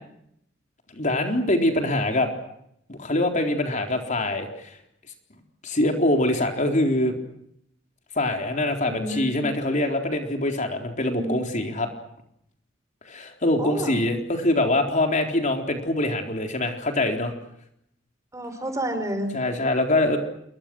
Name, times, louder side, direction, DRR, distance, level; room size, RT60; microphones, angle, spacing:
voice 1, 0.9-2.3 2.9-4.8 5.6-7.2 8.2-11.9 13.1-17.3 19.3-20.2, left 1 dB, 40° left, 4 dB, 4.0 m, -24 dB
voice 2, 8.8-9.4 11.0-11.4 13.6-14.0 18.3-19.3, right 1 dB, 15° right, 8 dB, 5.1 m, -30 dB
29.0 x 24.5 x 6.3 m, 0.74 s
head